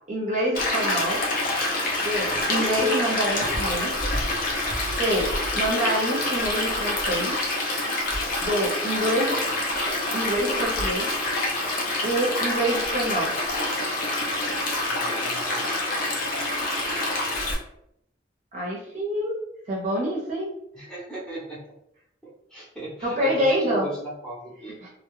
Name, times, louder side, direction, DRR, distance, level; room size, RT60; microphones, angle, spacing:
voice 1, 0.1-1.2 2.0-3.9 5.0-5.3 5.5-7.5 8.4-9.4 10.1-11.1 12.0-13.3 18.5-19.4 19.7-20.5 23.0-23.9 24.8-24.9, equal, 40° right, -4 dB, 0.7 m, -26 dB
Stream, 0.5-17.5, left 2 dB, 50° left, 0.6 m, -26 dB
voice 2, 14.8-15.8 20.7-21.6 22.2-24.8, right 2 dB, 5° left, -8 dB, 0.8 m, -37 dB
2.2 x 2.0 x 3.0 m, 0.75 s
head